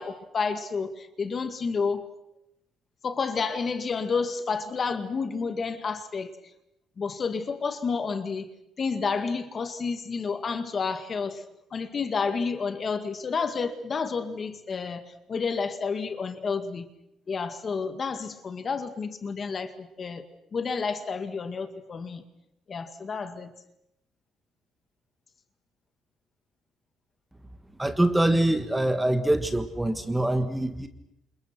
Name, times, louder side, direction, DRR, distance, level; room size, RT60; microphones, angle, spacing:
voice 1, 0.0-2.0 3.0-6.3 7.0-8.5 8.8-11.4 11.7-15.0 15.3-16.9 17.3-20.2 20.5-22.2 22.7-23.5, left 5 dB, 30° left, 9 dB, 2.0 m, -30 dB
voice 2, 27.8-30.9, right 1 dB, 5° right, 8 dB, 1.5 m, -24 dB
29.0 x 28.0 x 6.1 m, 0.82 s
cardioid pair, 160°, 0 cm